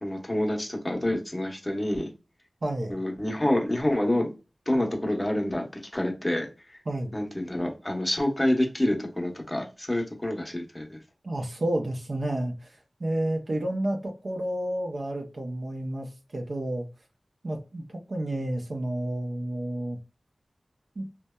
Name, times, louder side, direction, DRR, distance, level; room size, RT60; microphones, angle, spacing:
voice 1, 0.0-2.1 2.9-4.3 4.7-5.7 5.9-6.8 7.1-11.0, left 1 dB, 20° left, 0.7 m, -27 dB
voice 2, 2.6-3.0 6.9-7.1 11.2-16.8 17.4-20.0 21.0-21.1, right 1 dB, 70° right, 0.5 m, -30 dB
2.8 x 2.1 x 2.2 m
wide cardioid pair, 55°, 0 cm